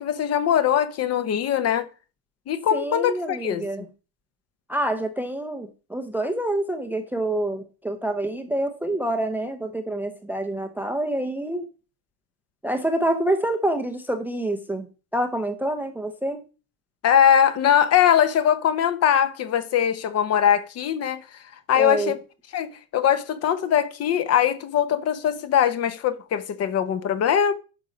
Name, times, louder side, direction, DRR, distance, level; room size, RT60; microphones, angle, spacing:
voice 1, 0.0-1.9 2.5-3.6 17.0-21.2 21.7-22.2 22.5-27.5, left 9 dB, 35° left, 0.8 m, -21 dB
voice 2, 2.7-3.9 4.7-11.7 12.6-16.4 21.7-22.1, right 1 dB, 5° right, 0.6 m, -27 dB
9.2 x 5.5 x 5.0 m
supercardioid pair, 140°, 45 cm